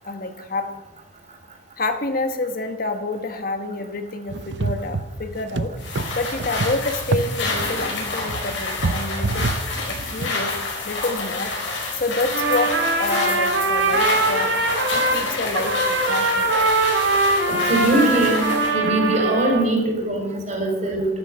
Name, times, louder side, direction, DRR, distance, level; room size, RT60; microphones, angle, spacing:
voice 1, 0.0-0.7 1.8-5.7 6.1-9.5 9.9-10.5 10.8-11.5 11.9-14.6 15.1-16.5, left 2 dB, 50° left, 7 dB, 1.2 m, -28 dB
sound 1, 4.3-10.3, right 3 dB, 65° right, 0.7 m, -28 dB
sound 2, 5.8-18.8, left 3 dB, 80° left, 5.4 m, -29 dB
Trumpet, 12.3-15.2 15.5-19.7, right 2 dB, 85° right, 3.0 m, -21 dB
voice 2, 17.5-18.4 18.7-21.1, right 1 dB, 40° right, 2 dB, 4.5 m, -21 dB
13.0 x 12.0 x 6.6 m, 1.0 s
head